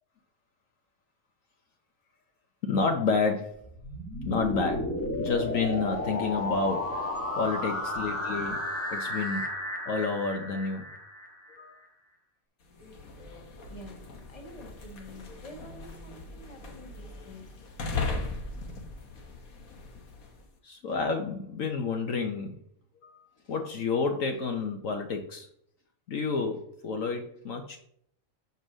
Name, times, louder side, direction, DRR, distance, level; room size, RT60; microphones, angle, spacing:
voice 1, 2.6-3.7 4.2-7.1 7.4-8.6 8.9-9.4 9.9-10.9 11.5-11.8 20.6-22.5 23.0-23.2 23.5-25.5 26.1-27.8, left 4 dB, 70° left, 4 dB, 1.3 m, -30 dB
sound 1, 3.6-11.6, left 1 dB, 10° left, 1.4 m, -33 dB
sound 2, 12.6-20.5, left 3 dB, 90° left, 1.8 m, -38 dB
voice 2, 13.7-17.6, equal, 25° left, 3 dB, 1.6 m, -48 dB
7.1 x 5.4 x 6.2 m, 0.68 s
omnidirectional pair, 1.4 m